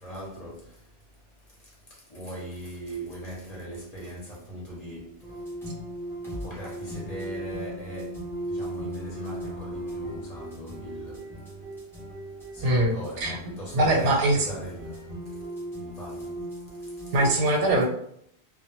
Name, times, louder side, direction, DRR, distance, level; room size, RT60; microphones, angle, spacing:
voice 1, 0.0-0.6 2.1-5.1 6.4-8.2 8.5-11.2 12.5-15.1 15.8-16.3, right 1 dB, 40° left, 0.7 m, -39 dB
sound 1, 5.2-17.3, right 1 dB, 5° left, 0.5 m, -38 dB
voice 2, 12.6-13.4 13.7-14.4 17.1-17.9, right 1 dB, 90° right, 1.0 m, -22 dB
2.2 x 2.0 x 3.0 m
omnidirectional pair, 1.2 m